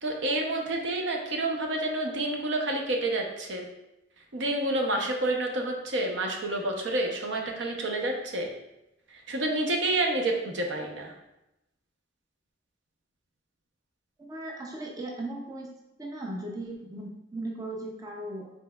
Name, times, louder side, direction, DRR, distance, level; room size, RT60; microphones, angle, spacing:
voice 1, 0.0-3.6 4.3-8.5 9.1-11.1, right 2 dB, 70° right, 2 dB, 0.7 m, -29 dB
voice 2, 14.2-15.7 16.0-18.5, right 1 dB, 20° right, -1 dB, 0.5 m, -37 dB
5.3 x 4.0 x 2.3 m, 0.91 s
head